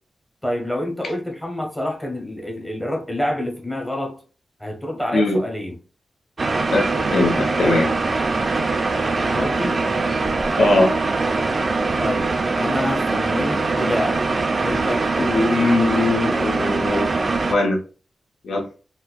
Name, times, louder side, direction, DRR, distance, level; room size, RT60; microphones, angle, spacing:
voice 1, 0.4-4.2 4.6-5.8 9.3-9.8 12.0-14.2 14.6-15.1, left 1 dB, 5° left, 0.7 m, -27 dB
sound 1, 6.4-17.5, right 3 dB, 35° right, 0.4 m, -22 dB
voice 2, 6.7-7.9 10.5-10.9 15.2-17.1 17.5-17.8 18.4-18.7, left 2 dB, 80° left, 0.7 m, -20 dB
4.3 x 2.0 x 2.3 m
wide cardioid pair, 170°, 0 cm